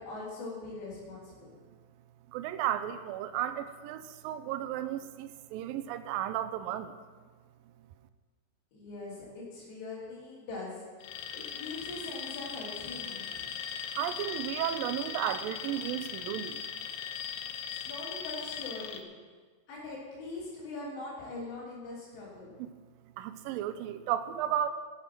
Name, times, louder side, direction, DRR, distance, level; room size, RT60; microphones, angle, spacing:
voice 1, 0.0-1.5 8.7-10.8 11.3-13.5 17.7-19.0 19.7-22.5, left 2 dB, 90° left, -9 dB, 5.6 m, -42 dB
voice 2, 2.3-6.9 14.0-16.6 22.6-22.7 23.2-24.7, right 11 dB, 85° right, 11 dB, 2.0 m, -34 dB
Alarm, 11.0-19.0, left 8 dB, 75° left, 2.4 m, -39 dB
16.5 x 9.3 x 6.1 m, 1.5 s
omnidirectional pair, 4.8 m